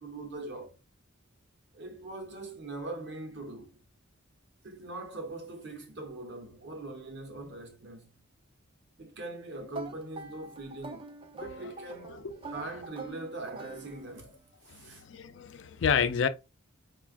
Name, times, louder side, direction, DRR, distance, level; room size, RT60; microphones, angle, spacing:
voice 1, 0.0-0.8 1.7-3.7 4.6-8.1 9.0-12.1 12.5-14.3 14.7-15.0, right 2 dB, 55° right, 0.9 m, -41 dB
sound 1, 9.7-14.4, right 3 dB, 25° right, 0.3 m, -45 dB
voice 2, 11.4-11.7 12.1-12.5 14.8-16.3, left 7 dB, 65° left, 0.4 m, -30 dB
4.9 x 2.4 x 2.4 m
head